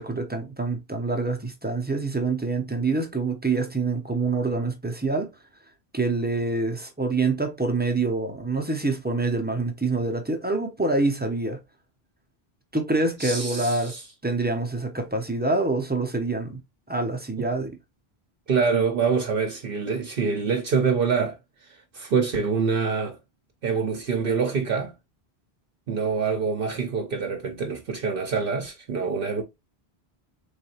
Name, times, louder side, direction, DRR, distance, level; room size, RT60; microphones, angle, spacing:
voice 1, 0.0-5.3 5.9-11.6 12.7-14.0 14.2-16.6 16.9-17.7, right 3 dB, 10° right, 0.5 m, -26 dB
voice 2, 13.2-14.0 17.4-17.5 18.5-21.4 21.9-23.2 23.6-24.9 25.9-29.4, right 5 dB, 65° right, 0.8 m, -25 dB
3.9 x 3.3 x 2.8 m
omnidirectional pair, 1.1 m